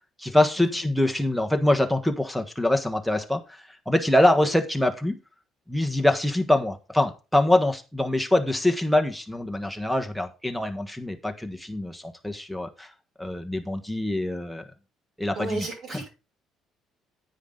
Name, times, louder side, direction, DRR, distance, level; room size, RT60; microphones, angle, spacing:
voice 1, 0.2-5.2 5.7-12.9 13.2-14.6 15.2-15.7 15.9-16.0, left 1 dB, ahead, 4 dB, 1.4 m, -24 dB
voice 2, 15.3-16.1, right 3 dB, 50° right, -1 dB, 6.2 m, -34 dB
9.7 x 9.1 x 3.9 m, 0.30 s
cardioid pair, 130°, 0 cm